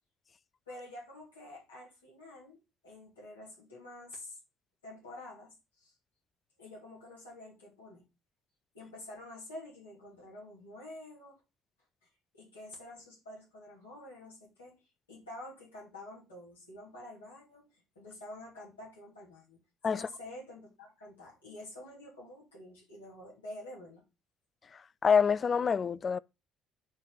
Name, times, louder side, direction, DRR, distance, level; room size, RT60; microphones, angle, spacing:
voice 1, 0.7-4.4 4.8-5.9 6.6-8.0 8.7-11.4 12.4-14.8 15.1-19.6 19.9-24.0, left 1 dB, 90° left, 2.8 m, -48 dB
voice 2, 24.7-26.2, left 6 dB, 40° left, 0.4 m, -27 dB
9.5 x 3.3 x 4.1 m
hypercardioid pair, 55°, 0 cm